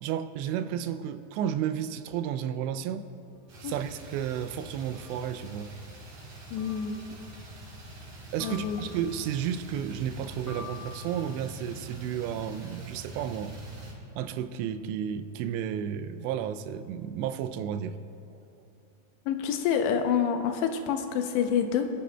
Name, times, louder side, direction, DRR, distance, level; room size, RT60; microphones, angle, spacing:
voice 1, 0.0-3.1 3.6-5.7 8.3-13.5 14.1-18.0 18.3-18.4, right 9 dB, 85° right, 9 dB, 2.8 m, -32 dB
sound 1, 3.3-3.4 4.9-5.3 6.6-7.1 8.4-9.2 10.5-11.4, left 5 dB, 60° left, 1.4 m, -46 dB
sound 2, 3.5-13.9, right 2 dB, 45° right, 3.4 m, -45 dB
voice 2, 6.5-7.0 8.4-8.8 19.3-21.9, left 7 dB, 85° left, 6 dB, 2.9 m, -27 dB
24.0 x 10.0 x 2.2 m, 2.7 s
omnidirectional pair, 5.0 m